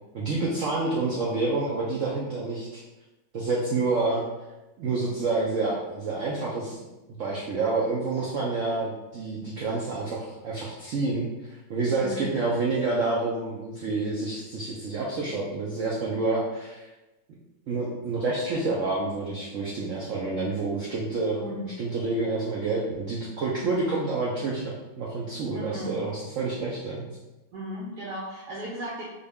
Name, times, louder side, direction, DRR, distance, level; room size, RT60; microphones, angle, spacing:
voice 1, 0.1-2.8 3.3-4.2 4.8-6.8 7.2-16.9 17.7-21.5 21.8-27.0, right 3 dB, 85° right, -4 dB, 0.6 m, -28 dB
voice 2, 21.4-21.7 25.5-26.0 27.5-29.0, equal, 70° right, -5 dB, 1.1 m, -36 dB
3.8 x 2.2 x 3.4 m, 1.0 s
omnidirectional pair, 2.1 m